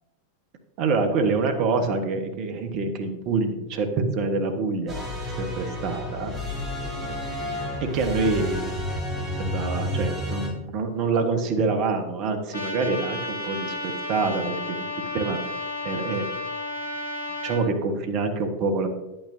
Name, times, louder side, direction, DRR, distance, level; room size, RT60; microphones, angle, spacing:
voice 1, 0.8-5.1 5.4-6.3 7.8-8.7 9.3-14.6 15.1-15.4 15.8-16.2 17.4-18.9, right 4 dB, 40° right, 5 dB, 1.2 m, -26 dB
sound 1, 4.9-10.5, left 1 dB, 25° right, 3.3 m, -30 dB
Trumpet, 12.5-17.6, left 2 dB, 70° left, 1.5 m, -32 dB
10.5 x 8.9 x 2.7 m, 1.0 s
figure-of-eight pair, 90°, 0 cm